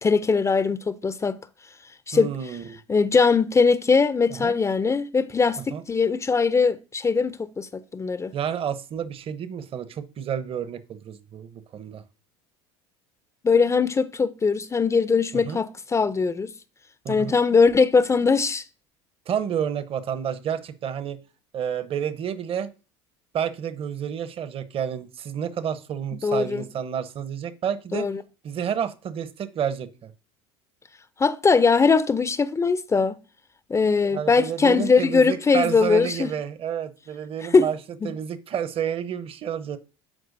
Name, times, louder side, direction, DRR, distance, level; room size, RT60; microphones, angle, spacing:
voice 1, 0.0-1.4 2.1-2.6 2.9-8.3 13.4-16.5 17.1-18.6 26.2-26.6 27.9-28.2 31.2-33.2 33.7-36.3 37.4-37.7 38.0-38.1, left 4 dB, 20° left, 0.5 m, -21 dB
voice 2, 2.1-2.8 4.4-4.5 5.7-5.8 8.3-12.0 15.3-15.6 17.0-17.3 19.3-21.2 21.5-22.7 23.3-28.1 28.4-30.1 34.1-37.8 38.0-39.8, right 8 dB, 40° right, 0.9 m, -30 dB
12.5 x 4.7 x 2.7 m
hypercardioid pair, 80°, 14 cm